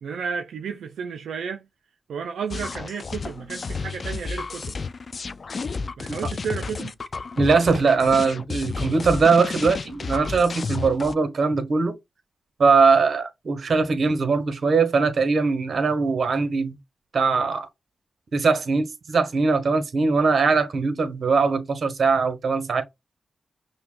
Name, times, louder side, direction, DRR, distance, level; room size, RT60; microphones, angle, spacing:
voice 1, 0.0-1.6 2.1-4.8 6.0-6.9, right 6 dB, 85° right, 0.4 m, -32 dB
sound 1, 2.5-11.1, left 4 dB, 55° left, 0.3 m, -32 dB
voice 2, 7.4-12.0 12.6-16.8 17.1-17.7 18.3-22.8, right 4 dB, 65° right, 1.1 m, -21 dB
5.6 x 2.2 x 2.4 m
cardioid pair, 50°, 0 cm